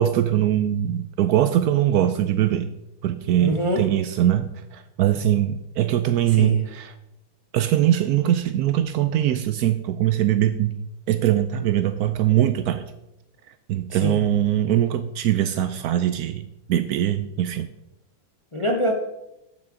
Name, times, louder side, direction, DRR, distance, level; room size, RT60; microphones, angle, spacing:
voice 1, 0.0-2.7 3.0-6.9 7.5-10.8 11.1-12.9 13.7-17.7, right 11 dB, 85° right, 10 dB, 0.8 m, -22 dB
voice 2, 3.4-3.8 6.3-6.6 13.9-14.2 18.5-18.9, left 1 dB, 35° left, 3 dB, 0.5 m, -24 dB
15.5 x 6.2 x 3.7 m, 0.88 s
omnidirectional pair, 2.1 m